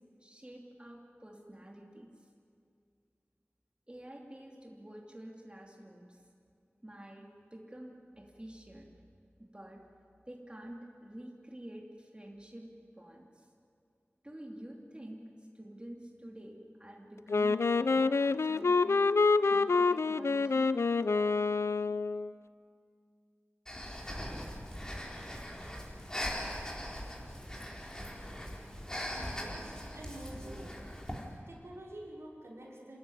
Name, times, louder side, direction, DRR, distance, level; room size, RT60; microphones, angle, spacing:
voice 1, 0.2-2.3 3.9-6.2 6.8-8.9 9.4-9.8 10.3-13.5 14.2-19.0 19.5-20.7, right 1 dB, 25° right, -1 dB, 2.8 m, -49 dB
Wind instrument woodwind instrument, 17.3-22.3, left 4 dB, 80° left, 0.5 m, -27 dB
Breathing, 23.7-31.3, equal, 15° left, 4.1 m, -41 dB
voice 2, 29.2-30.7 31.5-33.0, right 1 dB, 75° right, -4 dB, 5.4 m, -47 dB
27.0 x 14.0 x 9.9 m, 2.3 s
wide cardioid pair, 45°, 5 cm